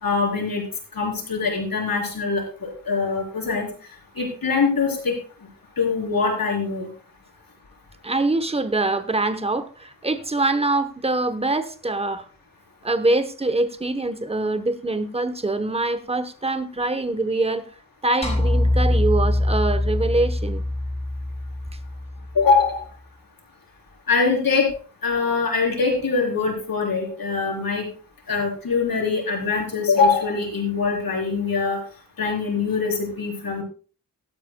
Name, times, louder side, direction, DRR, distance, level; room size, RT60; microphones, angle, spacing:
voice 1, 0.0-0.6 0.9-3.7 4.2-5.2 5.8-6.9 22.3-22.8 24.1-24.7 25.0-27.9 28.3-31.8 32.2-33.6, left 4 dB, 80° left, 4.1 m, -23 dB
voice 2, 8.0-12.2 12.8-17.6 18.0-20.6, right 2 dB, 15° right, 0.9 m, -24 dB
sound 1, 18.2-22.6, left 1 dB, 20° left, 4.1 m, -23 dB
16.5 x 12.5 x 2.2 m
wide cardioid pair, 105°, 34 cm